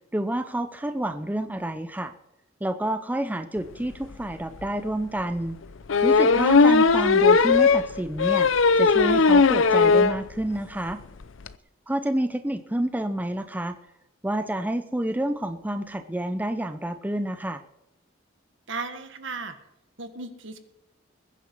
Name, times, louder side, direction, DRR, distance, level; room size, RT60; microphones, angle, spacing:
voice 1, 0.1-2.1 2.6-5.6 6.0-8.5 8.8-11.0 11.9-13.8 14.2-17.6, right 1 dB, 10° right, 8 dB, 0.6 m, -28 dB
sound 1, 4.1-4.2 4.6-4.7 5.9-10.2 10.6-10.7 10.9-11.0 11.2-11.5, left 4 dB, 75° left, 0.7 m, -18 dB
voice 2, 18.7-19.5 20.0-20.6, right 4 dB, 65° right, 9 dB, 1.7 m, -35 dB
21.5 x 10.0 x 4.6 m, 0.88 s
head